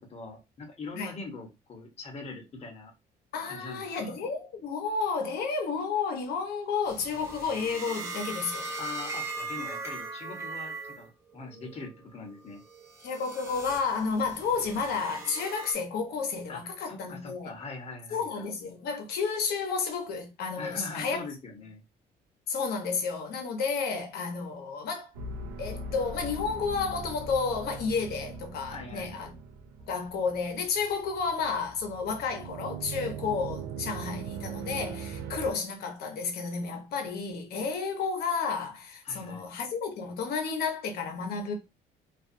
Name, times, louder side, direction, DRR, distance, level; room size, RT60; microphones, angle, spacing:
voice 1, 0.1-2.9 3.5-4.2 8.8-12.6 16.5-18.4 20.6-21.8 28.7-29.2 35.2-35.4 39.0-39.5, left 3 dB, 40° left, 1.0 m, -42 dB
voice 2, 3.3-8.7 13.0-17.5 18.1-21.3 22.5-25.1 25.6-29.3 29.9-41.5, left 5 dB, 70° left, 0.9 m, -31 dB
sound 1, 6.9-11.1 11.5-11.9 12.5-15.7, right 3 dB, 15° right, 0.7 m, -39 dB
sound 2, 25.1-35.5, right 4 dB, 90° right, 0.5 m, -40 dB
2.4 x 2.3 x 2.6 m
cardioid pair, 110°, 17 cm